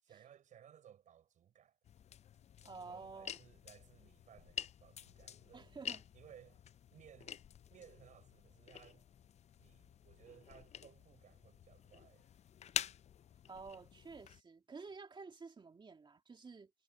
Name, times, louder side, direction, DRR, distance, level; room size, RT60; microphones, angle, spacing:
voice 1, 0.0-1.8 2.8-5.8 6.1-6.6 6.9-7.4 7.7-9.1 9.6-12.3, right 9 dB, 80° right, 5.6 m, -61 dB
sound 1, 1.8-14.4, left 9 dB, 60° left, 0.5 m, -48 dB
voice 2, 2.6-3.3 5.5-6.0 13.5-16.7, right 4 dB, 40° right, 2.4 m, -51 dB
cardioid pair, 85°, 13 cm